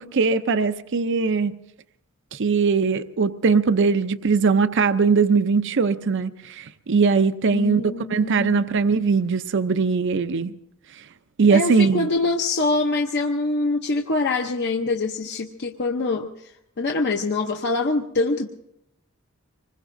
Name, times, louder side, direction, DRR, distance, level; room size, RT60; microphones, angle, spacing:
voice 1, 0.0-1.5 2.3-10.5 11.4-12.1, right 5 dB, 60° right, 0.6 m, -20 dB
voice 2, 7.5-8.6 11.5-16.5 16.8-18.5, left 3 dB, 55° left, 0.8 m, -24 dB
25.5 x 21.0 x 2.6 m
head